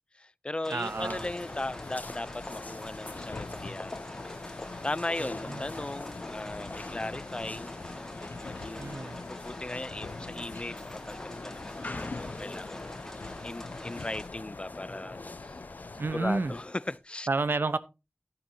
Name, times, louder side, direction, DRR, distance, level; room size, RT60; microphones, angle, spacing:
voice 1, 0.1-4.2 4.8-7.7 8.4-15.6 16.1-17.3, left 2 dB, 30° left, 0.4 m, -38 dB
sound 1, 0.6-14.3, left 1 dB, 15° left, 1.9 m, -46 dB
voice 2, 0.7-1.2 5.5-5.6 8.6-9.2 16.0-16.5 17.3-17.8, right 3 dB, 80° right, 0.9 m, -30 dB
sound 2, 0.8-17.0, left 2 dB, 50° left, 1.4 m, -45 dB
sound 3, 1.0-16.6, left 3 dB, 80° left, 0.6 m, -44 dB
12.0 x 10.5 x 2.8 m
wide cardioid pair, 65°, 4 cm